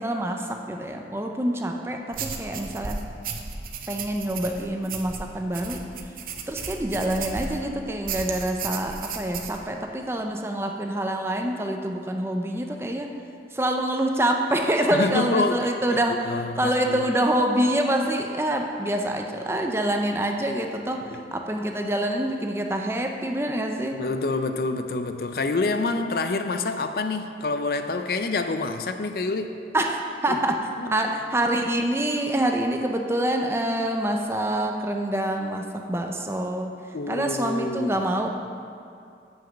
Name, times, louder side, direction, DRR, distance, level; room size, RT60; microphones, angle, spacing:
voice 1, 0.0-3.0 3.9-5.9 6.5-13.1 13.5-24.0 29.7-36.7 37.1-38.3, right 1 dB, 15° right, 3 dB, 0.5 m, -26 dB
sound 1, 2.1-7.7 8.0-9.6, right 5 dB, 50° right, 0.7 m, -34 dB
voice 2, 14.9-17.1 21.1-21.2 23.9-29.6 30.3-30.4 30.8-30.9 36.9-38.0, left 3 dB, 55° left, 8 dB, 0.5 m, -27 dB
7.4 x 6.1 x 7.0 m, 2.5 s
head